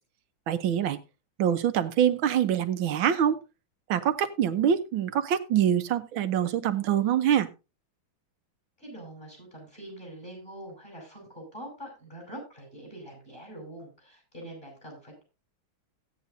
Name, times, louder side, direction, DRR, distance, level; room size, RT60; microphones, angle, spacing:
voice 1, 0.5-1.0 1.4-3.4 3.9-7.5, right 9 dB, 75° right, 10 dB, 1.7 m, -25 dB
voice 2, 8.8-15.2, right 1 dB, 25° left, -1 dB, 6.1 m, -44 dB
16.0 x 9.4 x 2.7 m, 0.29 s
omnidirectional pair, 2.2 m